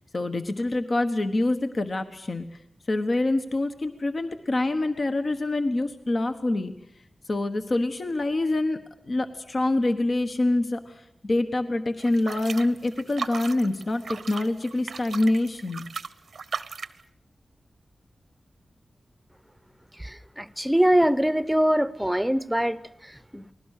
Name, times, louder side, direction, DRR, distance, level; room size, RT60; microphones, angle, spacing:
voice 1, 0.1-2.4 2.9-6.7 7.3-8.8 9.0-15.8, left 2 dB, 50° left, 7 dB, 1.3 m, -26 dB
sound 1, 12.0-17.0, right 5 dB, 90° right, 0.8 m, -37 dB
voice 2, 20.0-23.5, equal, 5° right, 16 dB, 0.8 m, -24 dB
29.0 x 20.0 x 6.7 m, 0.75 s
wide cardioid pair, 85°, 0 cm